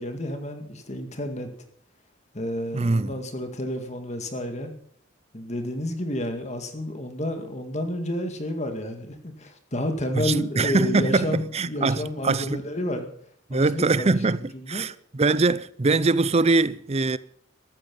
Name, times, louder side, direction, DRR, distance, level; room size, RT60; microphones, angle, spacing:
voice 1, 0.0-1.5 2.3-4.7 5.3-13.1 13.5-14.1 14.5-14.8, left 1 dB, 35° left, 2.1 m, -30 dB
voice 2, 2.7-3.1 10.2-12.6 13.5-17.2, right 3 dB, 30° right, 0.5 m, -23 dB
14.0 x 13.5 x 5.5 m
head